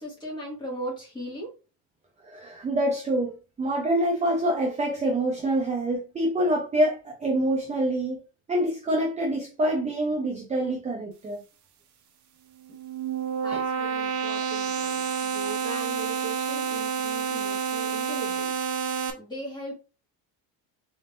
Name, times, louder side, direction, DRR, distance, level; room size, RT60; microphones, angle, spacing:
voice 1, 0.0-1.5 13.4-19.7, right 1 dB, 10° left, 2.1 m, -38 dB
voice 2, 2.2-3.3 3.6-8.2 8.5-11.4 13.5-13.6, right 1 dB, 20° right, 0.8 m, -26 dB
sound 1, 12.6-19.1, right 7 dB, 50° right, 0.9 m, -29 dB
4.0 x 3.6 x 2.7 m
cardioid pair, 155°, 36 cm